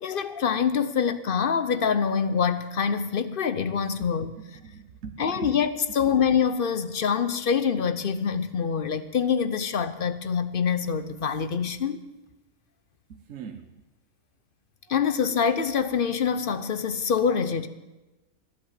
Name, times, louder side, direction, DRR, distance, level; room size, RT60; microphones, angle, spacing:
voice 1, 0.0-4.3 5.2-12.0 14.9-17.7, left 6 dB, 50° left, 0.7 m, -25 dB
voice 2, 4.5-5.5 6.0-6.2 13.1-13.6 14.8-15.0, right 6 dB, 60° right, 1.3 m, -41 dB
15.0 x 11.0 x 7.4 m
omnidirectional pair, 1.6 m